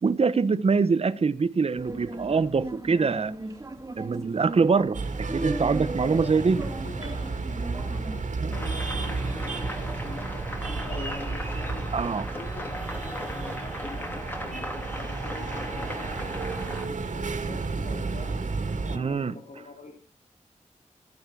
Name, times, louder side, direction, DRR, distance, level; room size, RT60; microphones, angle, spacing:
voice 1, 0.0-3.3 4.0-5.0 5.3-6.6 8.4-8.6 11.9-12.2 18.9-19.3, right 5 dB, 50° right, 0.8 m, -24 dB
sound 1, 1.8-8.2, right 2 dB, 25° right, 2.2 m, -37 dB
sound 2, 4.9-19.0, right 3 dB, 75° right, 2.2 m, -32 dB
voice 2, 6.0-11.9 12.3-18.4 18.8-19.9, left 4 dB, 70° left, 2.9 m, -44 dB
sound 3, 8.5-16.9, left 1 dB, 15° left, 2.9 m, -38 dB
14.5 x 11.5 x 6.0 m
wide cardioid pair, 100°, 13 cm